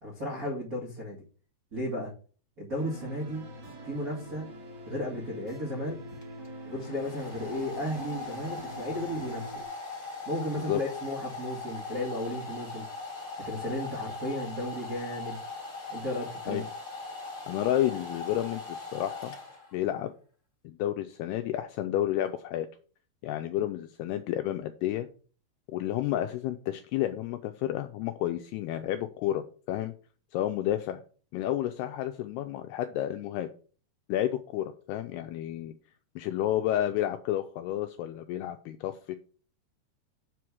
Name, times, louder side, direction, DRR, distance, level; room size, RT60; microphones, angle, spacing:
voice 1, 0.0-1.2 1.7-2.1 2.6-3.4 3.8-4.4 4.9-6.0 6.6-9.4 10.2-12.9 13.4-15.4 15.9-16.6, equal, 65° right, -5 dB, 0.8 m, -34 dB
sound 1, 2.7-9.6, equal, 40° right, 1.9 m, -44 dB
Domestic sounds home sounds, 6.2-19.9, left 3 dB, 25° left, 1.6 m, -40 dB
voice 2, 17.5-19.3 19.7-20.1 20.6-22.7 23.2-25.1 25.7-29.9 30.3-31.0 31.3-33.5 34.1-35.7 36.2-39.2, left 12 dB, 85° left, 7 dB, 2.3 m, -31 dB
7.7 x 4.8 x 6.0 m, 0.40 s
omnidirectional pair, 5.1 m